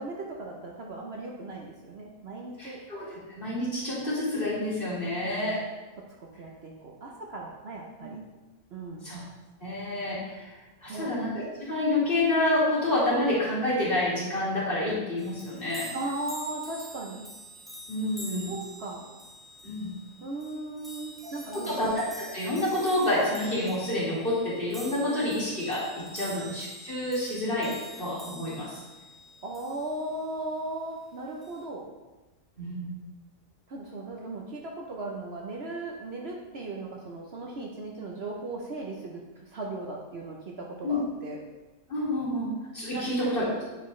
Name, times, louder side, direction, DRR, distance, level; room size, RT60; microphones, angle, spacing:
voice 1, 0.0-2.8 5.1-5.2 5.5-5.6 6.2-8.2 8.7-9.1 10.8-11.2 15.9-17.3 18.5-19.1 20.2-21.8 26.2-26.3 29.4-31.9 33.7-41.4 42.9-43.0, right 2 dB, 55° right, -1 dB, 0.9 m, -37 dB
voice 2, 2.6-5.6 8.0-8.1 9.0-9.2 9.6-10.5 10.8-15.9 17.9-18.5 19.6-20.0 21.5-25.9 26.1-28.8 32.6-33.0 40.8-41.0 41.9-43.6, left 1 dB, 40° left, -7 dB, 2.3 m, -28 dB
sound 1, 15.2-30.2 31.4-31.6, equal, ahead, 0.9 m, -46 dB
9.2 x 4.4 x 3.1 m, 1.1 s
omnidirectional pair, 1.4 m